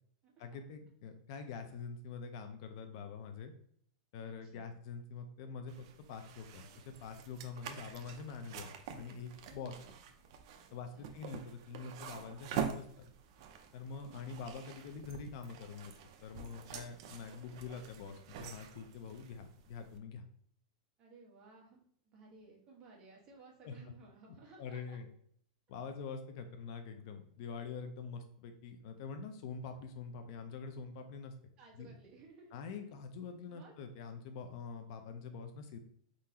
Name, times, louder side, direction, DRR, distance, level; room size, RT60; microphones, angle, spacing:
voice 1, 0.4-3.5 4.1-6.7 7.0-9.7 10.7-13.1 13.7-15.9 16.2-20.2 23.6-23.7 24.6-25.1 25.7-31.3 31.8-32.0 32.5-35.8, left 5 dB, 50° left, 7 dB, 0.5 m, -45 dB
voice 2, 4.2-4.7 9.4-9.9 10.7-11.1 13.8-14.4 21.0-25.0 31.6-32.6 33.5-33.7, right 3 dB, 25° right, -2 dB, 1.2 m, -58 dB
sound 1, 5.7-20.0, right 8 dB, 50° right, 0.5 m, -46 dB
4.3 x 3.8 x 2.8 m, 0.63 s
supercardioid pair, 160°, 3 cm